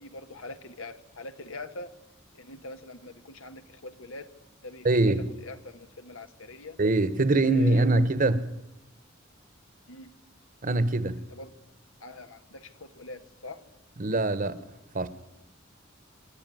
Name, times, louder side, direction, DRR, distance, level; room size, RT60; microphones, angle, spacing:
voice 1, 0.0-1.9 2.3-4.3 4.6-5.0 5.4-6.8 7.5-7.9 9.9-10.1 11.2-11.5 12.0-13.6, left 2 dB, 90° left, 1.5 m, -43 dB
voice 2, 4.8-5.3 6.8-8.5 10.6-11.2 14.0-14.6 14.9-15.1, right 2 dB, 45° right, 1.2 m, -23 dB
27.0 x 11.5 x 9.4 m
head